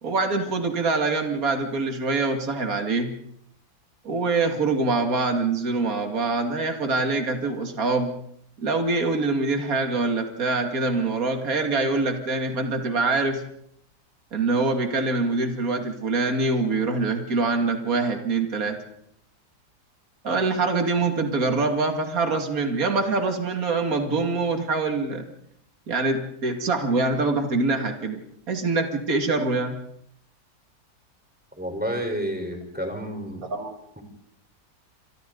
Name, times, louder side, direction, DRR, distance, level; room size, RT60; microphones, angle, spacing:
voice 1, 0.0-3.1 4.0-8.1 8.6-13.4 14.3-18.8 20.2-25.3 25.9-28.2 28.5-29.8 33.5-33.8, right 3 dB, 55° right, 4 dB, 2.7 m, -24 dB
voice 2, 31.6-33.5, equal, 5° right, 3 dB, 4.3 m, -30 dB
29.5 x 27.0 x 4.0 m, 0.72 s
omnidirectional pair, 1.8 m